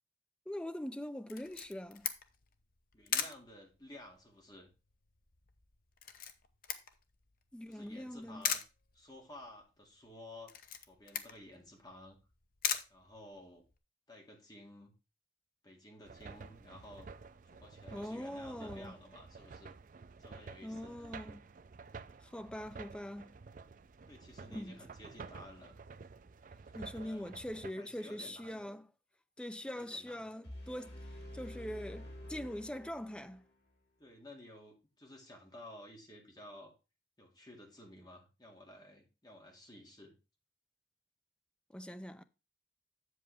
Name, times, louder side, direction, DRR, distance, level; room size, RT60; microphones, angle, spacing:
voice 1, 0.5-2.1 7.5-8.4 17.9-18.9 20.6-21.4 22.2-23.3 24.5-24.8 26.7-28.9 29.4-31.0 31.3-33.4 41.7-42.2, left 1 dB, 5° left, 0.5 m, -42 dB
Camera, 1.3-13.8, left 8 dB, 50° left, 0.9 m, -41 dB
voice 2, 2.9-4.7 7.7-8.6 8.9-10.5 10.8-12.2 12.9-13.6 14.1-14.9 15.6-17.1 17.4-19.7 20.2-21.0 24.1-25.8 26.6-27.3 27.7-28.6 29.6-30.2 34.0-36.7 37.2-40.2, left 1 dB, 25° left, 2.2 m, -54 dB
sound 1, 16.0-27.7, right 4 dB, 45° right, 0.4 m, -51 dB
sound 2, 30.4-33.5, left 1 dB, 70° left, 4.2 m, -48 dB
7.8 x 7.8 x 3.5 m
head